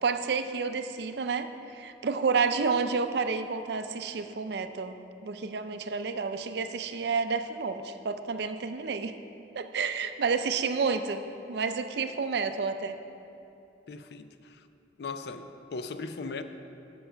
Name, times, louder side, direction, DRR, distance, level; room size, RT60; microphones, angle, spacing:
voice 1, 0.0-5.0 5.2-9.2 9.5-13.0, right 5 dB, 65° right, 9 dB, 0.4 m, -30 dB
voice 2, 13.9-14.7 15.0-16.4, left 4 dB, 65° left, 9 dB, 0.4 m, -38 dB
7.8 x 7.0 x 5.6 m, 2.8 s
head